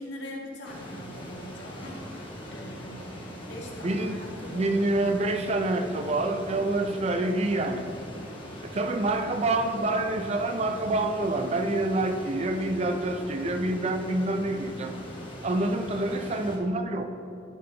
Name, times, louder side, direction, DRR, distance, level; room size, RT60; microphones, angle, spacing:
voice 1, 0.0-2.1 2.5-4.7, equal, 85° left, -2 dB, 1.6 m, -42 dB
sound 1, 0.6-16.6, equal, 30° left, 1.2 m, -41 dB
voice 2, 3.8-4.2 4.5-7.9 8.7-15.0 15.4-17.1, right 2 dB, 35° right, 6 dB, 0.5 m, -27 dB
11.5 x 5.2 x 3.4 m, 2.8 s
head